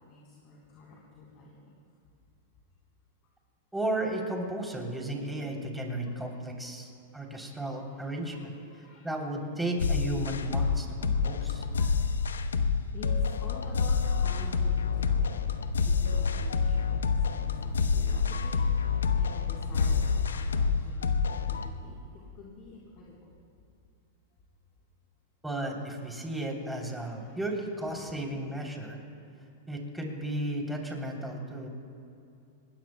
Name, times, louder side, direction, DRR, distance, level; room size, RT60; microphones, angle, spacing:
voice 1, 0.1-1.7 6.6-6.9 7.9-9.1 10.5-10.8 11.1-11.9 12.9-13.1 13.4-15.5 15.8-23.3 27.2-27.3, left 3 dB, 45° left, -4 dB, 3.6 m, -49 dB
voice 2, 3.7-8.5 9.0-11.7 25.4-29.0 29.7-31.7, right 1 dB, 5° right, 0 dB, 3.1 m, -34 dB
sound 1, 9.8-21.7, left 5 dB, 85° left, 0.8 m, -28 dB
25.5 x 20.5 x 2.2 m, 2.6 s
hypercardioid pair, 110°, 0 cm